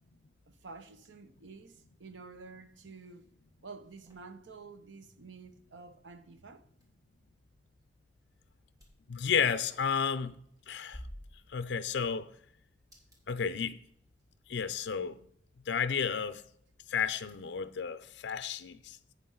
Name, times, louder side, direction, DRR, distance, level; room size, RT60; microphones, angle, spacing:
voice 1, 0.5-3.3 3.6-6.7, right 4 dB, 85° right, 0.8 m, -50 dB
sound 1, 3.8-17.3, equal, 20° right, 2.6 m, -58 dB
voice 2, 9.1-10.4 10.7-11.0 11.5-12.3 13.3-13.8 14.5-15.2 15.7-16.4 16.9-19.0, left 6 dB, 75° left, 0.5 m, -32 dB
11.0 x 8.5 x 3.9 m
head